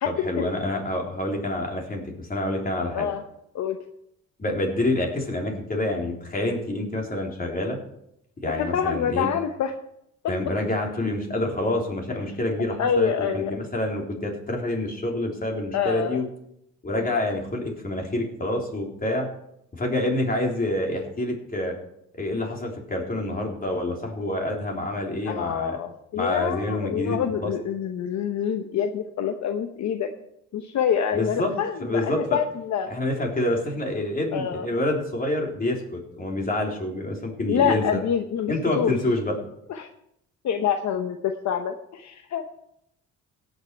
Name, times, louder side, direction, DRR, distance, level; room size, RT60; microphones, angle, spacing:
voice 1, 0.0-3.1 4.4-7.8 8.4-9.3 10.3-16.3 16.8-19.3 19.7-21.7 22.2-25.8 26.2-27.5 31.1-31.5 31.8-32.4 32.9-38.0 38.5-39.3, left 1 dB, 30° left, 0 dB, 3.5 m, -27 dB
voice 2, 8.6-9.7 12.8-13.5 15.7-16.2 16.9-17.2 25.3-30.1 30.5-32.9 34.3-34.7 37.5-38.9 39.7-39.9 40.4-42.6, left 8 dB, 65° left, 6 dB, 0.9 m, -26 dB
17.5 x 6.6 x 4.6 m, 0.76 s
cardioid pair, 90°, 30 cm